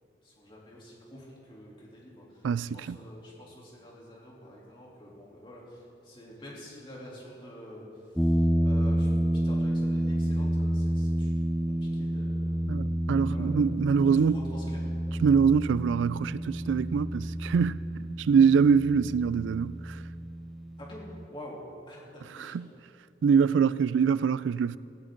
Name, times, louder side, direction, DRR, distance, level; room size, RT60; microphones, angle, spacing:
voice 1, 0.2-11.3 11.9-12.7 13.3-13.7 14.2-14.8 20.8-21.6 21.9-22.7, equal, 25° left, 3.3 m, -47 dB
voice 2, 2.4-3.0 12.7-14.4 15.2-17.8 18.2-20.0 22.4-22.7 23.2-24.8, right 6 dB, 90° right, 0.3 m, -24 dB
sound 1, 8.2-21.3, right 1 dB, ahead, 0.4 m, -29 dB
17.0 x 16.0 x 3.9 m
head